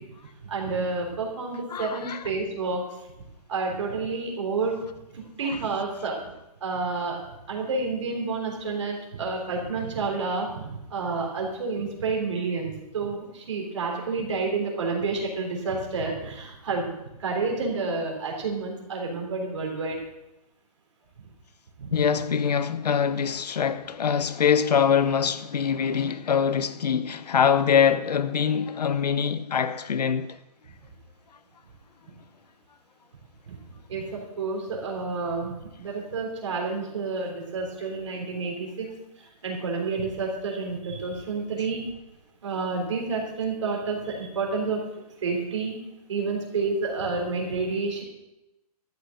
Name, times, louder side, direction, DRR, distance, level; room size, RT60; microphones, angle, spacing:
voice 1, 0.4-2.8 3.5-4.8 5.1-6.2 6.6-7.2 7.5-10.6 10.9-16.9 17.2-20.0 21.8-21.9 33.5-33.6 33.9-38.9 39.4-41.8 42.4-44.8 45.2-45.7 46.1-48.0, right 4 dB, 50° right, 3.6 m, -29 dB
voice 2, 1.7-2.2 21.9-30.4, left 7 dB, 85° left, 0.9 m, -24 dB
13.0 x 6.7 x 7.8 m
hypercardioid pair, 180°, 20 cm